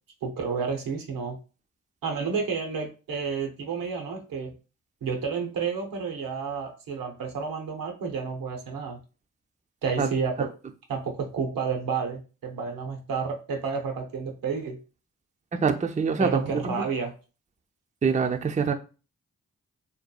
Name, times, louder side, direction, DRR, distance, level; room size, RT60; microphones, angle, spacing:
voice 1, 0.2-1.4 2.0-4.5 5.0-9.0 9.8-10.5 10.9-14.8 16.2-17.1, right 5 dB, 85° right, 2 dB, 0.7 m, -30 dB
voice 2, 15.5-16.8 18.0-18.7, right 5 dB, 20° right, 5 dB, 0.4 m, -25 dB
2.8 x 2.2 x 2.3 m, 0.33 s
supercardioid pair, 40°, 33 cm